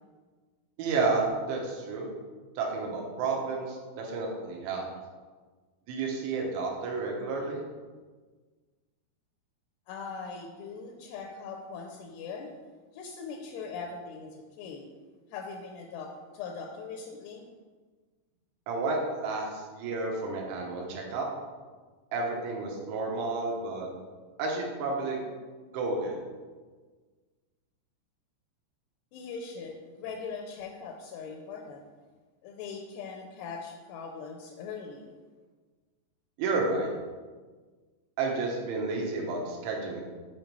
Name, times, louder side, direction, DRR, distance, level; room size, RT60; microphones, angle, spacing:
voice 1, 0.8-2.1 2.6-4.9 5.9-7.6 18.7-21.3 22.1-23.9 24.4-25.2 25.7-26.2 36.4-36.9 38.2-40.0, right 3 dB, 85° right, 0 dB, 3.4 m, -31 dB
voice 2, 9.9-12.5 12.9-14.9 15.3-17.5 29.1-31.8 32.4-35.1, left 5 dB, 85° left, 1 dB, 2.4 m, -40 dB
7.6 x 5.2 x 3.1 m, 1.4 s
omnidirectional pair, 5.2 m